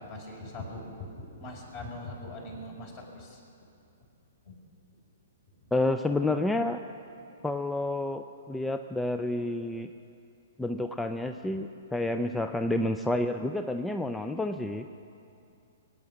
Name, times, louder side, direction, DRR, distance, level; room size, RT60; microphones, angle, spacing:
voice 1, 0.0-3.4 4.4-4.5, left 1 dB, 45° left, 0 dB, 4.4 m, -41 dB
voice 2, 5.7-6.8 7.4-9.9 10.6-14.9, left 2 dB, 5° left, 7 dB, 0.5 m, -29 dB
22.5 x 9.2 x 6.5 m, 2.6 s
figure-of-eight pair, 120°, 0 cm